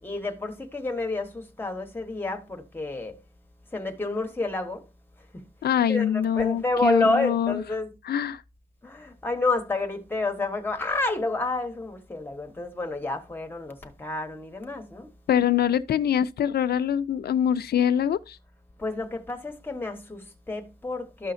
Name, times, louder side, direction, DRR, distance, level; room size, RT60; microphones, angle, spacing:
voice 1, 0.0-3.1 3.7-4.8 5.9-7.9 8.8-15.1 18.8-21.3, left 2 dB, 15° left, 1.3 m, -29 dB
voice 2, 5.6-7.6 8.0-8.4 15.3-18.4, left 9 dB, 85° left, 0.4 m, -24 dB
13.5 x 5.6 x 2.6 m
wide cardioid pair, 165°, 16 cm